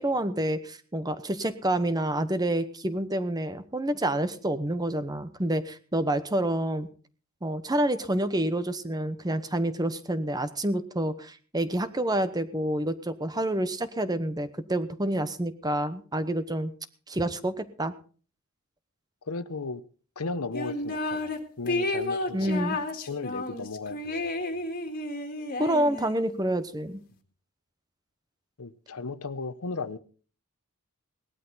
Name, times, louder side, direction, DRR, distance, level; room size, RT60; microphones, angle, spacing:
voice 1, 0.0-6.9 7.4-16.7 17.1-17.9 22.3-22.8 25.6-27.0, right 1 dB, 20° right, 1.0 m, -28 dB
voice 2, 19.3-19.8 20.2-24.3 28.6-30.0, left 3 dB, 85° left, 0.9 m, -36 dB
sound 1, 20.5-21.4 21.7-26.3, left 2 dB, 40° left, 2.1 m, -31 dB
18.0 x 12.5 x 4.1 m
head